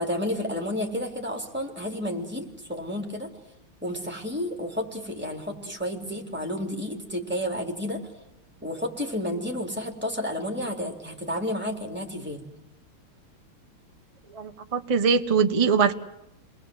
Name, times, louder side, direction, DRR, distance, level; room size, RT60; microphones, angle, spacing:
voice 1, 0.0-3.3 3.8-8.0 8.6-12.5, left 1 dB, 5° right, 2 dB, 3.8 m, -31 dB
voice 2, 14.3-15.9, right 6 dB, 25° right, 6 dB, 0.8 m, -22 dB
29.0 x 20.5 x 8.1 m, 0.88 s
omnidirectional pair, 2.4 m